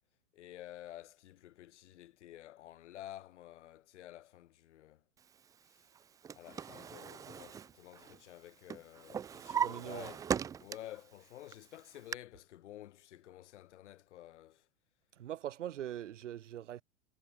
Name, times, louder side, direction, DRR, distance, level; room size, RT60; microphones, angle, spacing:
voice 1, 0.3-5.0 5.7-5.8 6.3-10.2 10.6-14.7, left 13 dB, 65° left, 1.9 m, -51 dB
Drawer open or close, 5.9-8.4 8.7-11.0 11.5-12.1, right 7 dB, 10° right, 0.4 m, -38 dB
voice 2, 9.5-10.1 15.1-16.8, right 11 dB, 70° right, 2.3 m, -42 dB
hypercardioid pair, 100°, 38 cm